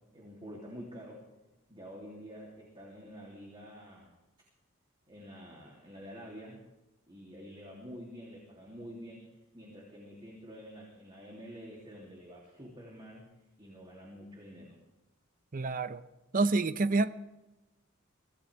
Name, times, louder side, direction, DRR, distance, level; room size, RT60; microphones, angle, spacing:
voice 1, 0.1-1.2 1.7-4.1 5.1-6.6 7.1-9.3 9.5-13.3 13.6-14.8, equal, 25° right, -3 dB, 2.9 m, -48 dB
voice 2, 15.5-16.0 16.3-17.1, right 3 dB, 40° right, 13 dB, 0.6 m, -28 dB
24.0 x 16.5 x 3.4 m, 1.0 s
head